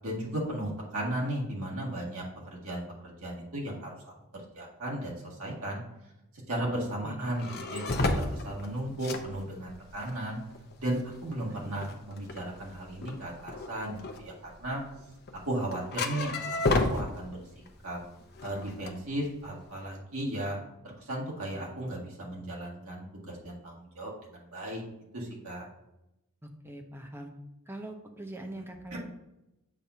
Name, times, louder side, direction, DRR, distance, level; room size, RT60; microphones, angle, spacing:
voice 1, 0.0-5.8 6.5-10.4 10.8-14.8 15.4-17.4 17.8-18.0 18.4-20.6 20.8-24.8 25.1-25.7, right 1 dB, 75° right, -3 dB, 1.8 m, -35 dB
sound 1, 7.2-17.8 18.0-19.7, left 2 dB, 50° left, 0.6 m, -32 dB
voice 2, 26.4-27.3 27.7-29.2, right 1 dB, 10° right, 3 dB, 0.6 m, -42 dB
7.2 x 2.7 x 5.5 m, 0.90 s
head